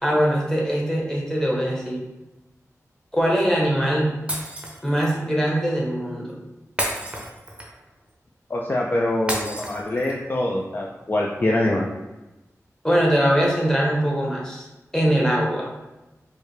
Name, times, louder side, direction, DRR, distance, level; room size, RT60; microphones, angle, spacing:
voice 1, 0.0-2.0 3.1-4.1 4.8-6.3 12.8-14.6 14.9-15.7, equal, 10° left, -3 dB, 1.0 m, -22 dB
Shatter, 4.3-5.2 6.8-7.9 9.3-10.3, right 1 dB, 20° right, 0.7 m, -30 dB
voice 2, 8.5-11.9, left 1 dB, 35° left, -1 dB, 0.4 m, -24 dB
4.7 x 2.1 x 3.2 m, 1.0 s
wide cardioid pair, 90°, 6 cm